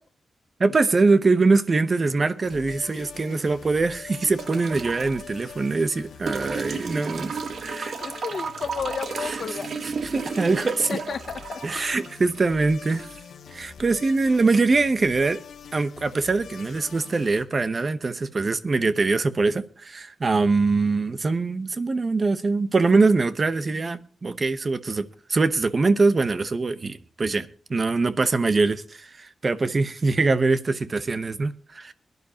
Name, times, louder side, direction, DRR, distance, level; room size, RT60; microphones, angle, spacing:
voice 1, 0.6-7.3 7.6-8.0 9.2-9.4 9.8-11.0 11.6-13.1 13.5-15.4 15.7-31.9, right 3 dB, 30° right, 0.9 m, -23 dB
sound 1, 2.4-17.5, left 7 dB, 75° left, 1.4 m, -44 dB
sound 2, 4.4-5.2 6.3-13.3 14.6-14.7, right 5 dB, 55° right, 1.3 m, -33 dB
voice 2, 8.0-9.7 10.6-11.6, left 6 dB, 60° left, 0.7 m, -32 dB
22.0 x 11.0 x 2.9 m
wide cardioid pair, 155°, 0 cm